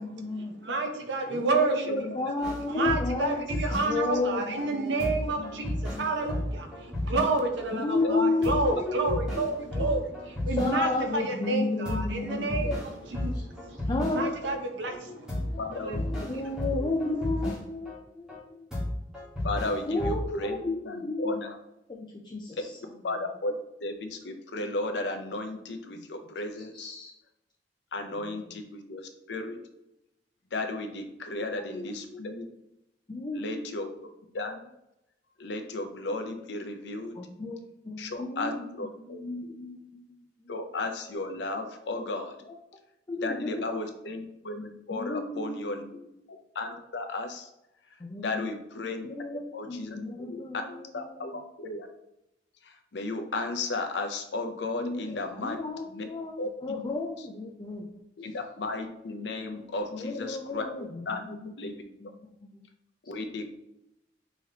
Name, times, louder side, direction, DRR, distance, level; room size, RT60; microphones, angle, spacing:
voice 1, 0.0-0.5 1.3-3.5 3.8-6.1 7.7-9.5 9.8-10.0 10.5-12.6 13.3-13.4 13.8-14.6 14.9-15.2 15.5-18.7 19.9-21.5 21.9-23.0 25.9-26.1 26.5-27.1 28.1-28.6 31.5-32.3 33.1-33.9 37.2-40.0 40.4-40.5 42.5-42.6 43.1-43.9 44.9-46.1 48.0-48.6 49.0-51.4 54.7-58.3 59.9-62.1 62.4-62.7, left 2 dB, 25° left, -1 dB, 0.4 m, -33 dB
voice 2, 0.6-1.8 2.8-12.8 13.1-16.4, right 3 dB, 75° right, 4 dB, 0.7 m, -30 dB
voice 3, 1.5-2.2 8.0-8.8 12.6-12.8 15.6-16.4 16.8-16.9 19.4-21.5 23.0-26.9 27.9-29.6 30.5-32.5 33.3-33.9 34.3-34.6 35.4-37.2 38.0-38.5 38.8-39.5 40.5-42.4 43.2-45.8 46.5-47.5 48.2-49.1 49.5-50.4 50.7-51.3 51.6-51.9 52.6-55.6 55.9-56.1 56.4-56.8 58.2-60.7 61.1-61.7 63.1-63.5, left 2 dB, 70° left, 6 dB, 0.6 m, -34 dB
sound 1, 2.4-4.2 4.6-4.7 5.0-7.7 8.0-8.1 8.4-11.1 11.4-11.5 11.8-14.5 14.9-15.0 15.3-18.0 18.3-18.4 18.7-20.5, left 1 dB, 5° right, 1.3 m, -33 dB
5.5 x 3.0 x 2.8 m, 0.87 s
head